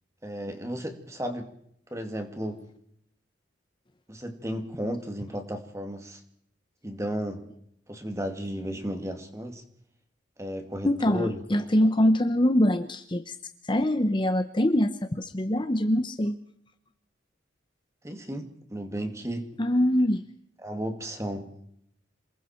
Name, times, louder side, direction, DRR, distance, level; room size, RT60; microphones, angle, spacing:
voice 1, 0.2-1.5 1.9-2.6 4.1-6.2 6.8-7.5 7.9-9.6 10.4-11.4 18.0-19.5 20.6-21.5, equal, 15° right, 6 dB, 2.3 m, -34 dB
voice 2, 10.8-13.4 13.6-16.4 19.6-20.2, left 1 dB, 25° left, 9 dB, 0.9 m, -24 dB
28.0 x 21.0 x 4.5 m, 0.71 s
head